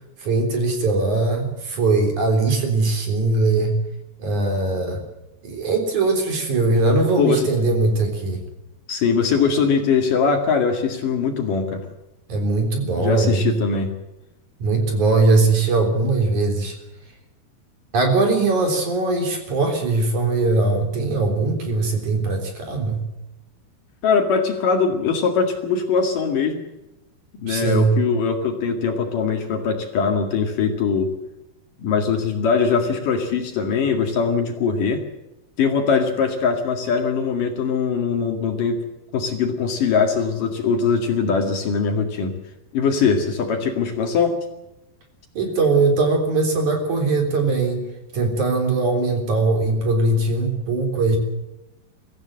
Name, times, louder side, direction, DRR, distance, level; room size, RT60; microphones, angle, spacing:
voice 1, 0.2-3.7 4.2-5.0 5.4-8.4 12.3-13.5 14.6-16.7 17.9-23.0 27.5-28.0 45.3-47.8 48.1-51.2, right 3 dB, 45° right, 4 dB, 4.9 m, -20 dB
voice 2, 7.2-7.5 8.9-11.9 13.0-13.9 24.0-26.6 27.4-31.1 31.8-35.0 35.6-38.8 39.1-42.3 42.7-44.4, left 5 dB, 55° left, 4 dB, 3.4 m, -21 dB
24.0 x 15.5 x 7.7 m, 0.95 s
omnidirectional pair, 4.9 m